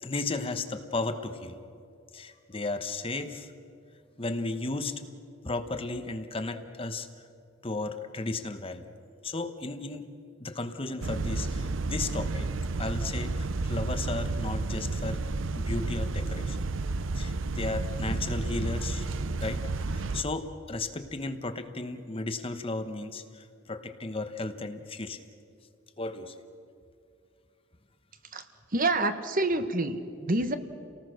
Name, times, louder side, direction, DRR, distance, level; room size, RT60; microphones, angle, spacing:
voice 1, 0.0-1.6 2.1-3.5 4.2-5.0 5.4-7.1 7.6-8.8 9.2-10.1 10.4-12.5 12.8-15.2 15.5-16.6 17.2-19.1 19.4-19.6 19.9-25.2 26.0-26.4, left 2 dB, 25° left, 8 dB, 1.0 m, -34 dB
sound 1, 11.0-20.2, right 3 dB, 70° right, 0.6 m, -31 dB
voice 2, 28.7-30.6, right 2 dB, 45° right, 9 dB, 1.2 m, -27 dB
29.5 x 19.0 x 6.4 m, 2.4 s
head